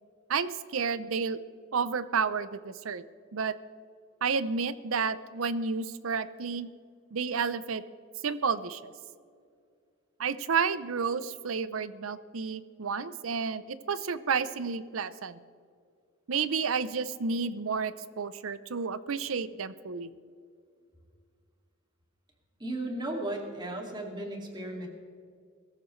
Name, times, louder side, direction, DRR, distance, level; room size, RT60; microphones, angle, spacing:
voice 1, 0.3-1.4 1.7-3.0 3.3-3.5 4.2-6.7 7.1-7.8 8.2-8.9 10.2-15.4 16.3-20.1 23.2-23.3, right 5 dB, 90° right, 15 dB, 0.7 m, -31 dB
voice 2, 22.6-24.9, right 1 dB, 20° right, 1 dB, 2.3 m, -35 dB
22.5 x 14.0 x 3.2 m, 2.2 s
head